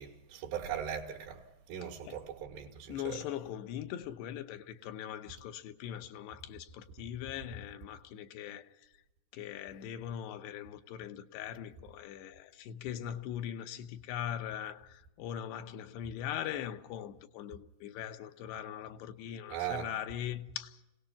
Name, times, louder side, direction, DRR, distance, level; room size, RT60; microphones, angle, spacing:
voice 1, 0.0-1.4 1.7-3.2 19.5-19.9, right 9 dB, 85° right, 3.9 m, -39 dB
voice 2, 2.9-8.9 9.3-20.8, left 10 dB, 85° left, 3.1 m, -41 dB
27.0 x 17.5 x 5.8 m
omnidirectional pair, 4.7 m